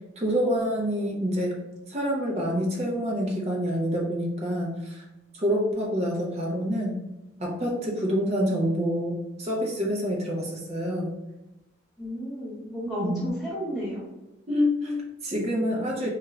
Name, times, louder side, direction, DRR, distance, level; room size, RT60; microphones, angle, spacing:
voice 1, 0.2-1.5 1.9-5.0 5.3-7.0 7.4-11.1 13.0-13.3 14.5-16.1, equal, 35° right, -2 dB, 0.6 m, -27 dB
voice 2, 12.0-14.0, equal, ahead, -8 dB, 1.0 m, -32 dB
2.4 x 2.3 x 3.1 m, 0.95 s
head